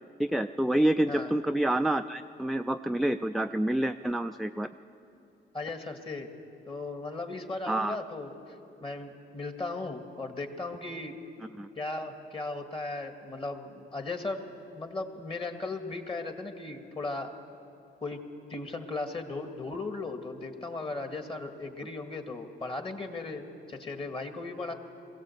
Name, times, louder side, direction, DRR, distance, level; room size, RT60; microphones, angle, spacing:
voice 1, 0.2-4.7 7.7-8.0 11.6-11.7, right 1 dB, ahead, 7 dB, 0.4 m, -28 dB
voice 2, 5.5-6.3 6.7-8.3 8.8-11.1 11.8-14.4 14.7-17.3 18.0-18.2 18.5-24.7, left 3 dB, 25° left, 5 dB, 2.0 m, -37 dB
21.0 x 16.0 x 8.0 m, 2.8 s
cardioid pair, 90°, 20 cm